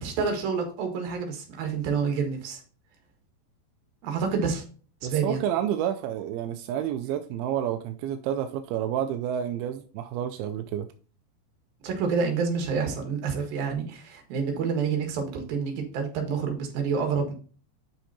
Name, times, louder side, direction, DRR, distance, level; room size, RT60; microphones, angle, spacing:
voice 1, 0.0-2.6 4.0-4.6 5.0-5.4 11.8-17.3, right 5 dB, 65° right, 3.2 m, -28 dB
voice 2, 5.0-10.9, right 10 dB, 80° right, 2.3 m, -29 dB
8.1 x 5.9 x 2.8 m
omnidirectional pair, 4.8 m